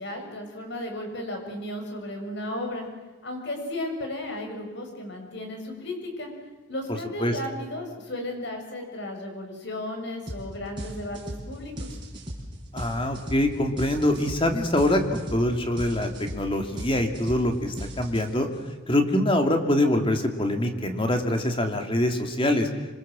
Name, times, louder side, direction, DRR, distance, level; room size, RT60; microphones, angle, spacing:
voice 1, 0.0-2.9 3.2-6.3 6.7-11.9, left 1 dB, 60° left, 3 dB, 7.0 m, -34 dB
sound 1, 10.3-10.5 10.8-18.6, right 1 dB, 25° right, 5.9 m, -37 dB
voice 2, 12.7-18.5 18.9-22.7, left 1 dB, 25° left, 5 dB, 2.7 m, -24 dB
26.5 x 26.5 x 7.7 m, 1.2 s
head